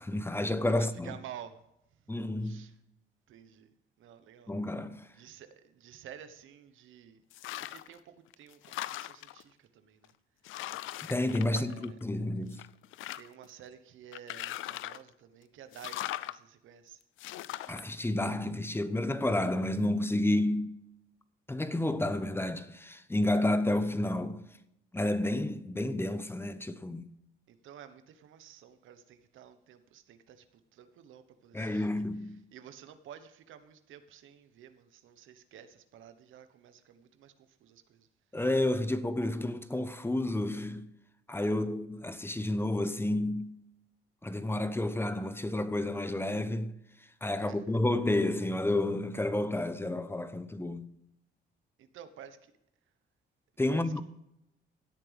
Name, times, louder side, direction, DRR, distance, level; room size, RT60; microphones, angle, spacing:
voice 1, 0.0-1.1 2.1-2.6 4.5-5.1 11.1-12.6 17.7-20.7 21.5-24.4 24.9-27.1 31.5-32.4 38.3-40.9 41.3-43.5 44.2-46.7 47.2-50.9 53.6-54.0, left 1 dB, 10° left, 0.9 m, -30 dB
voice 2, 0.7-1.6 2.4-2.7 3.3-3.7 4.0-4.5 5.1-7.2 7.6-8.6 8.9-10.1 11.5-11.9 13.1-17.0 27.5-32.0 32.5-38.1 47.4-47.8 51.8-52.5 53.7-54.0, right 9 dB, 80° right, 1.2 m, -51 dB
sound 1, 7.3-8.0 8.3-9.4 10.0-10.1 10.4-12.2 12.5-13.5 14.1-15.1 15.7-16.4 17.2-17.8, left 15 dB, 85° left, 0.5 m, -40 dB
16.5 x 8.6 x 3.5 m
cardioid pair, 90°, 20 cm